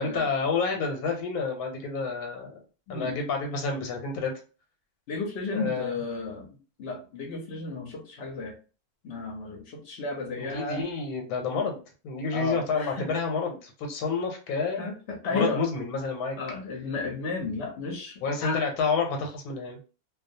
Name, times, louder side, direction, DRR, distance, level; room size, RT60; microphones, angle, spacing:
voice 1, 0.0-2.5 2.9-4.3 5.5-5.9 10.4-14.8 15.3-16.4 18.2-19.8, left 4 dB, 85° left, 2 dB, 1.1 m, -29 dB
voice 2, 2.9-3.2 5.1-8.5 9.0-10.8 12.3-13.0 14.8-15.6 16.4-18.6, left 3 dB, 60° left, 1 dB, 0.7 m, -33 dB
2.3 x 2.3 x 2.6 m, 0.35 s
omnidirectional pair, 1.6 m